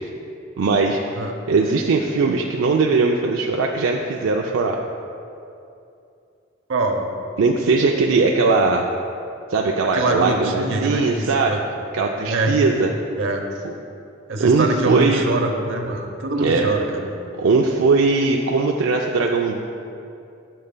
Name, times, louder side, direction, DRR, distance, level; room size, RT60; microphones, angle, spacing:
voice 1, 0.6-4.8 7.4-8.8 9.5-11.5 11.9-12.9 14.4-15.2 16.4-16.7 17.4-19.6, right 4 dB, 90° right, 0 dB, 0.4 m, -19 dB
voice 2, 6.7-7.1 9.9-11.6 12.2-12.5 13.2-13.4 14.3-17.1, right 2 dB, 70° right, 3 dB, 0.8 m, -24 dB
11.5 x 6.6 x 2.2 m, 2.6 s
head